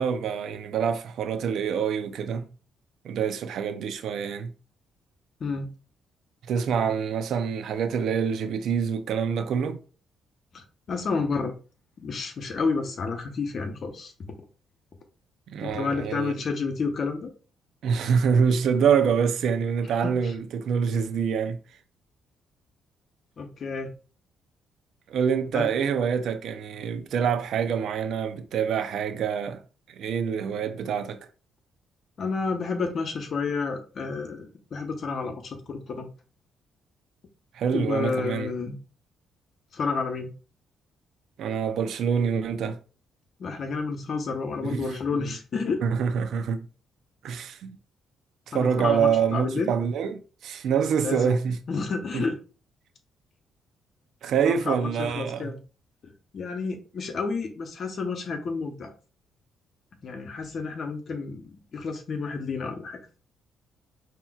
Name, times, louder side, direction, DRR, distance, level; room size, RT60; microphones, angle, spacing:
voice 1, 0.0-2.5 3.0-4.5 6.4-9.8 15.5-16.3 17.8-21.6 25.1-29.6 29.9-31.2 37.5-38.5 41.4-42.8 44.6-45.3 45.8-46.7 47.2-47.8 48.5-51.6 52.1-52.2 54.2-55.5, right 7 dB, 75° right, 0.5 m, -26 dB
voice 2, 5.4-5.7 10.5-11.5 12.0-14.4 15.6-17.3 20.0-20.3 23.4-23.9 25.5-25.7 32.2-36.1 37.7-38.8 39.7-40.3 43.4-45.8 48.5-49.7 51.0-51.3 51.7-52.4 54.4-55.6 56.0-58.9 60.0-63.0, left 4 dB, 55° left, 0.9 m, -30 dB
5.6 x 2.8 x 2.4 m
cardioid pair, 90°, 0 cm